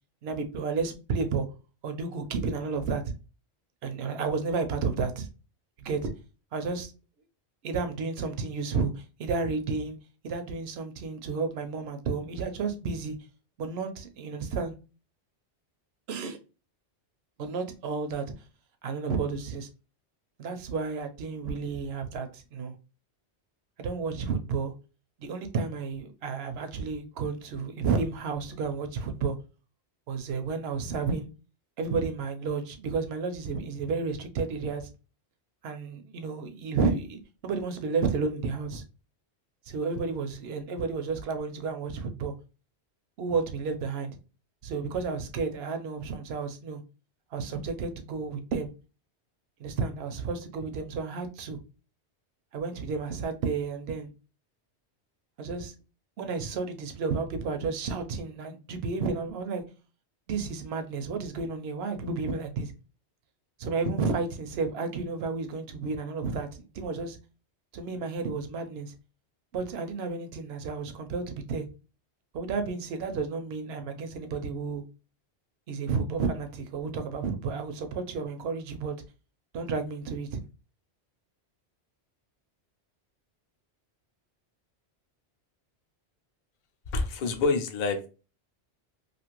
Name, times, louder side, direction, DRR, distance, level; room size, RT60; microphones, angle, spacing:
voice 1, 0.2-1.5 1.8-3.1 3.8-5.3 5.8-6.1 6.5-6.9 7.6-10.0 10.2-13.2 13.6-14.7 16.1-16.4 17.4-18.3 18.8-19.7 20.4-22.7 23.8-24.7 25.2-29.4 30.1-31.3 31.8-34.9 35.6-38.8 39.7-42.3 43.2-44.1 44.6-46.8 47.3-48.7 49.6-51.6 52.5-54.1 55.4-55.7 56.2-59.6 60.3-62.7 63.6-67.2 67.7-68.9 69.5-71.7 72.3-74.8 75.7-78.9 79.5-80.4, right 4 dB, 70° right, 0.8 m, -31 dB
voice 2, 86.9-88.1, left 3 dB, 55° left, 0.6 m, -27 dB
2.6 x 2.5 x 2.9 m
omnidirectional pair, 1.1 m